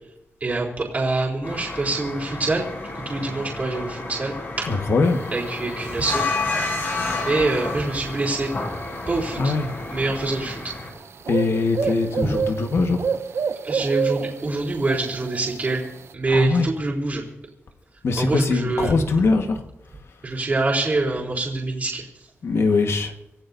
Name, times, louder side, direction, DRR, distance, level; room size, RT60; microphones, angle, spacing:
voice 1, 0.4-2.6 2.9-4.7 5.3-6.2 7.1-8.5 9.1-9.5 9.9-10.6 13.6-15.8 16.1-17.2 18.2-18.9 20.2-22.0, right 2 dB, 35° right, -5 dB, 3.9 m, -25 dB
sound 1, 1.4-10.9, left 3 dB, 50° left, 4.3 m, -30 dB
voice 2, 4.6-5.2 9.4-9.7 11.3-13.0 16.3-16.7 18.0-19.6 22.4-23.1, left 3 dB, 70° left, 5 dB, 1.5 m, -21 dB
sound 2, 5.1-16.1, right 6 dB, 65° right, 0.6 m, -31 dB
26.0 x 16.0 x 2.7 m, 0.92 s
wide cardioid pair, 155°, 5 cm